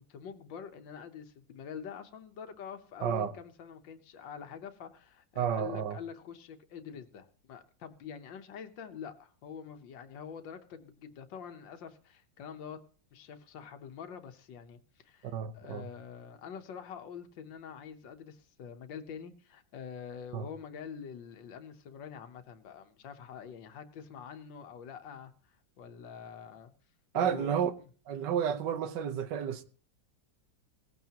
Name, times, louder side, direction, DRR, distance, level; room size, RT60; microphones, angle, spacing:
voice 1, 0.0-12.8 13.1-26.7 27.1-27.5, left 7 dB, 85° left, 1.7 m, -46 dB
voice 2, 3.0-3.3 5.4-6.0 15.3-15.9 20.3-20.5 27.1-27.7 28.1-29.6, right 8 dB, 70° right, 1.6 m, -31 dB
18.0 x 15.0 x 2.9 m
omnidirectional pair, 2.0 m